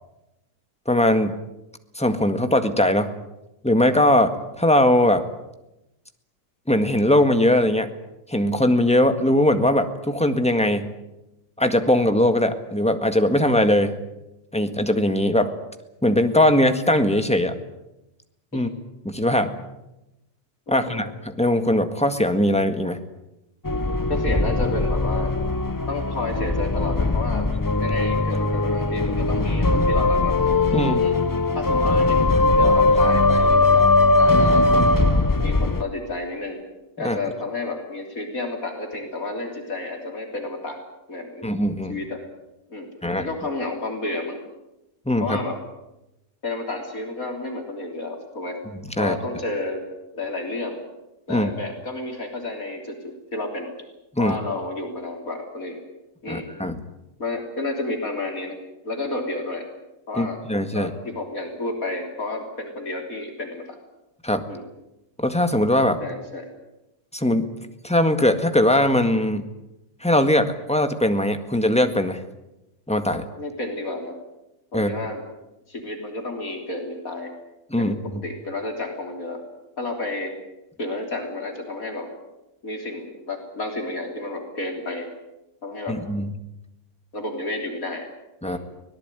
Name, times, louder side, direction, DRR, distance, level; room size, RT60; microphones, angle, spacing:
voice 1, 0.9-1.4 1.9-3.1 3.6-5.2 6.7-7.9 8.3-10.9 11.6-14.0 14.5-15.5 16.0-17.5 18.5-18.7 19.0-19.5 20.7-23.0 30.7-31.0 37.0-37.2 41.4-41.9 43.0-43.3 45.0-45.4 49.0-49.1 51.3-51.5 54.1-54.4 56.3-56.8 60.2-60.9 64.2-64.4 65.2-66.0 67.1-67.5 67.8-69.4 70.0-72.2 72.9-73.2 74.7-74.9 77.7-78.2 85.9-86.3 88.4-88.6, left 1 dB, 5° left, 7 dB, 1.6 m, -20 dB
voice 2, 20.7-21.0 24.1-25.3 25.9-27.5 27.8-30.3 31.0-31.2 31.5-34.6 35.4-36.6 37.0-40.8 41.1-41.5 41.9-42.2 42.7-42.9 43.2-44.4 45.2-45.6 46.4-48.6 49.0-49.8 50.1-50.8 51.3-53.0 53.3-53.7 54.2-55.8 56.2-56.5 57.2-58.6 58.8-59.6 60.1-60.4 60.7-63.8 64.5-64.7 66.0-66.5 73.4-74.1 74.7-75.2 75.7-77.3 77.8-79.4 79.8-80.3 80.8-82.1 82.6-85.1 85.6-86.0 87.1-88.1 88.4-88.6, left 2 dB, 55° left, 3 dB, 3.8 m, -31 dB
sound 1, 23.6-35.8, left 2 dB, 25° left, 0.4 m, -20 dB
24.5 x 18.0 x 9.3 m, 0.93 s
omnidirectional pair, 1.7 m